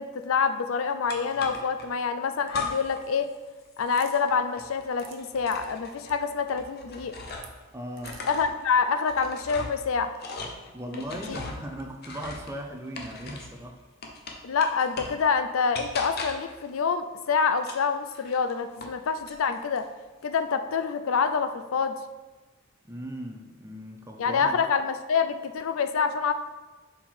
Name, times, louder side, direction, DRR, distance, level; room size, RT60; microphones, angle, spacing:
voice 1, 0.0-3.3 3.8-7.1 8.2-10.1 10.9-11.0 11.3-11.4 14.4-19.9 20.2-22.0 24.2-26.3, left 5 dB, 75° left, 9 dB, 0.4 m, -26 dB
sound 1, 1.1-1.9 2.5-3.1 3.3-7.6 7.9-13.6 14.0-15.3 15.7-16.6 17.6-19.0 19.3-19.9, left 3 dB, 45° left, 0.7 m, -39 dB
sound 2, 4.0-4.2 4.8-5.2 5.5-5.6 6.0-6.2 7.3-7.5 8.0-8.4, right 9 dB, 65° right, 0.7 m, -47 dB
voice 2, 7.7-8.2 10.7-13.8 22.8-24.6, right 1 dB, 15° right, 3 dB, 0.5 m, -38 dB
5.5 x 4.5 x 4.5 m, 1.2 s
head